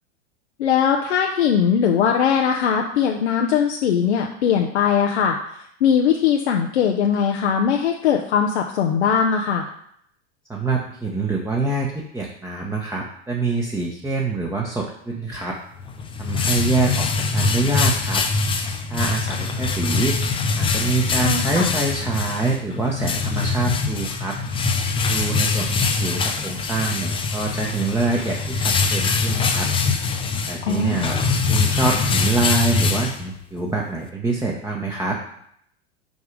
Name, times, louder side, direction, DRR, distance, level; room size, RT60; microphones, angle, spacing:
voice 1, 0.6-5.4 5.8-9.7 21.2-21.7 30.6-31.0, left 7 dB, 80° left, 2 dB, 0.8 m, -20 dB
voice 2, 10.5-15.6 16.2-18.2 18.9-20.1 20.5-24.4 25.1-29.7 30.5-31.2 31.5-35.2, right 3 dB, 10° right, -2 dB, 1.0 m, -25 dB
sound 1, 15.8-33.6, left 4 dB, 15° left, 0.6 m, -23 dB
5.5 x 4.8 x 4.8 m, 0.68 s
hypercardioid pair, 105°, 33 cm